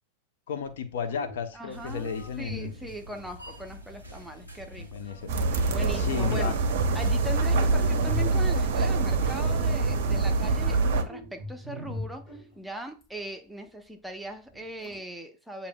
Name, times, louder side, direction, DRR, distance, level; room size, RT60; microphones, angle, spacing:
voice 1, 0.5-2.7 4.8-5.3 5.9-6.6, left 6 dB, 60° left, 0.6 m, -33 dB
sound 1, 0.7-0.8 1.0-1.7 2.4-3.3 5.2-5.7 7.6-8.7 10.9-13.0 14.5-15.0, left 1 dB, 15° left, 2.3 m, -40 dB
voice 2, 1.5-2.1 2.4-5.1 5.7-6.6 6.9-15.7, right 1 dB, 5° right, 0.7 m, -40 dB
sound 2, 1.7-7.8, equal, 90° left, 1.5 m, -47 dB
sound 3, 5.3-11.0, right 3 dB, 55° right, 0.6 m, -25 dB
8.4 x 2.8 x 2.2 m
figure-of-eight pair, 90°, 0 cm